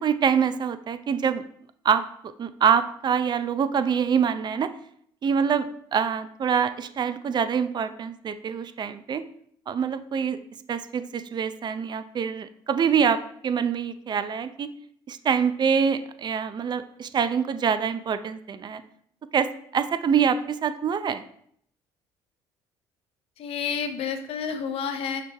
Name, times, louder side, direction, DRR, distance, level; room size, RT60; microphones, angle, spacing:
voice 1, 0.0-1.4 1.8-2.0 2.4-4.7 5.2-9.2 9.7-10.4 10.7-14.7 15.1-18.8 19.3-21.2, right 7 dB, 45° right, 11 dB, 0.5 m, -25 dB
voice 2, 23.4-25.2, left 6 dB, 65° left, 8 dB, 0.9 m, -30 dB
5.8 x 4.6 x 3.4 m, 0.65 s
supercardioid pair, 75°, 11 cm